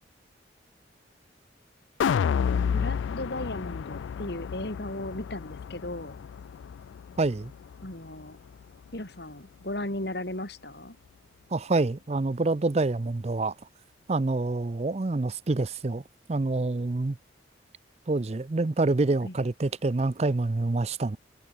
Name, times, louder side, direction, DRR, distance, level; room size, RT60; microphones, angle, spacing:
sound 1, 2.0-8.2 8.6-8.7, left 7 dB, 80° left, 0.3 m, -31 dB
voice 1, 2.7-6.2 7.8-8.4 8.9-11.0 19.2-19.4, left 1 dB, 60° left, 3.9 m, -36 dB
voice 2, 7.2-7.5 11.5-13.5 14.1-16.0 16.3-17.2 18.1-21.2, right 2 dB, 35° right, 0.5 m, -27 dB
head